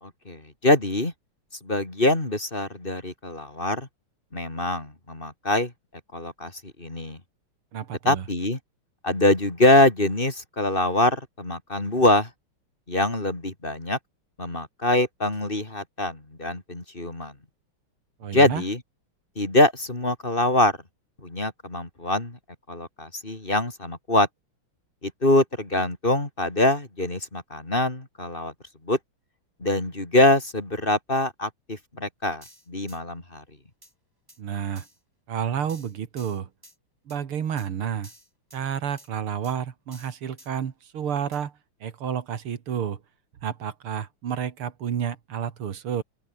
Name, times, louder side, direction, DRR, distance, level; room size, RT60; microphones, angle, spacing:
voice 1, 0.0-1.1 1.6-3.9 4.3-5.7 6.1-6.5 6.8-7.2 8.0-8.6 9.0-12.3 12.9-14.0 14.4-17.3 18.3-18.8 19.4-20.8 21.2-22.4 22.7-24.3 25.0-28.5 28.8-29.0 29.6-33.4, left 1 dB, 25° left, 3.4 m, -24 dB
voice 2, 7.7-8.2 18.2-18.6 34.4-34.8 35.3-36.5 37.1-38.1 38.5-41.5 41.8-43.0 43.4-46.0, right 8 dB, 85° right, 2.7 m, -30 dB
sound 1, 32.4-33.0 33.8-33.9 34.3-34.4 34.8-35.0 35.7-36.8 37.1-37.2 37.6-37.7 38.0-38.6 39.0-39.1 39.4-39.6 39.9-40.5 41.3-41.4, equal, 10° right, 8.1 m, -51 dB
open air
omnidirectional pair, 2.4 m